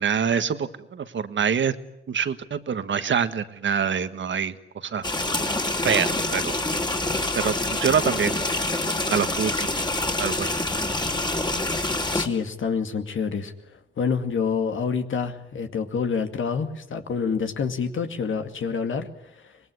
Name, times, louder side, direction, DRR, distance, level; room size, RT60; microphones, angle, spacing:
voice 1, 0.0-1.8 2.1-5.1 5.8-6.5 7.3-8.3 8.9-9.7 10.2-10.6, right 7 dB, 65° right, 11 dB, 1.6 m, -25 dB
sound 1, 5.0-12.3, left 2 dB, 20° left, 3.3 m, -26 dB
voice 2, 12.1-13.5 14.0-19.1 19.3-19.5, left 6 dB, 75° left, 6 dB, 2.3 m, -27 dB
25.0 x 20.0 x 9.8 m, 0.80 s
cardioid pair, 70°, 21 cm